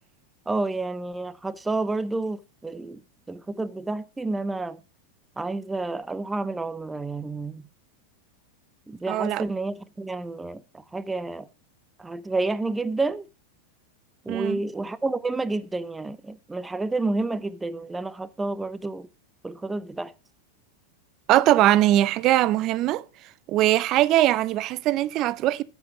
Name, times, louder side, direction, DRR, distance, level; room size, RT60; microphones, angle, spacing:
voice 1, 0.5-3.0 3.3-4.8 5.4-7.6 8.9-10.6 10.9-11.5 12.0-13.3 14.3-19.1 19.4-20.1, right 2 dB, 10° right, 0.8 m, -29 dB
voice 2, 9.1-9.4 14.3-14.6 21.3-23.0 23.5-25.6, right 14 dB, 45° right, 0.6 m, -21 dB
10.5 x 7.7 x 5.0 m
hypercardioid pair, 100°, 0 cm